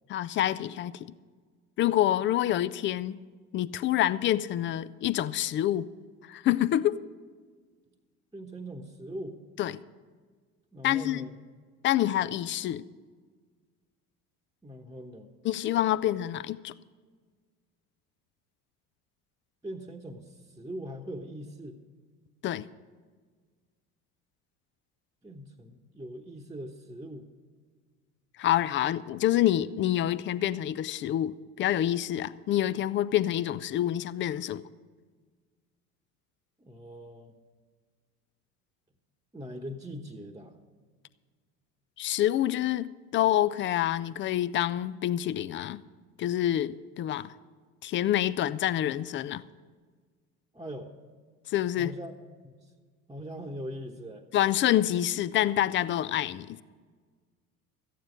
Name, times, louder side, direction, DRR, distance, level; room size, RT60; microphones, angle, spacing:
voice 1, 0.1-0.9 1.8-3.2 3.5-5.9 6.3-7.0 9.6-9.8 10.8-11.3 11.8-12.8 15.4-16.7 22.4-22.7 28.4-34.6 42.0-45.8 46.2-47.3 47.8-49.4 51.5-51.9 54.3-56.6, left 12 dB, 30° left, 0.4 m, -27 dB
voice 2, 8.3-9.4 10.7-11.4 14.6-15.3 19.6-21.8 25.2-27.3 36.6-37.3 39.3-40.5 50.5-50.9 51.8-52.1 52.4-52.5 53.1-54.2, equal, 10° right, 1.1 m, -41 dB
14.0 x 9.3 x 6.4 m
figure-of-eight pair, 65°, 46 cm